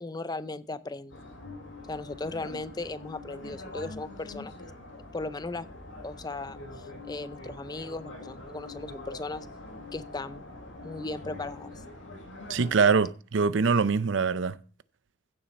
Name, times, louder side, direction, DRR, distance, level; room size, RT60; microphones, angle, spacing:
voice 1, 0.0-1.2 1.9-4.7 5.1-5.7 6.0-9.5 9.9-10.4 10.8-11.7, left 2 dB, 20° left, 0.5 m, -37 dB
sound 1, 1.1-12.7, left 2 dB, 90° left, 5.7 m, -44 dB
voice 2, 12.5-14.6, right 5 dB, 75° right, 0.6 m, -23 dB
15.5 x 7.3 x 4.1 m
head